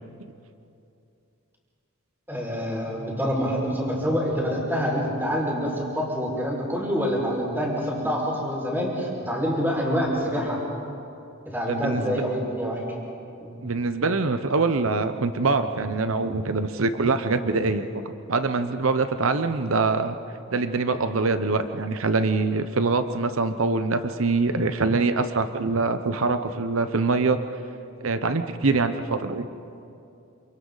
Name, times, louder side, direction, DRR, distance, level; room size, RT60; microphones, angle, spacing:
voice 1, 2.3-10.6 11.5-12.8 13.4-13.6, equal, 10° right, -3 dB, 5.6 m, -26 dB
voice 2, 11.7-12.2 13.6-17.9 18.3-20.2 20.5-27.4 28.0-29.5, right 3 dB, 80° right, 9 dB, 0.9 m, -24 dB
28.5 x 28.0 x 4.0 m, 2.7 s
head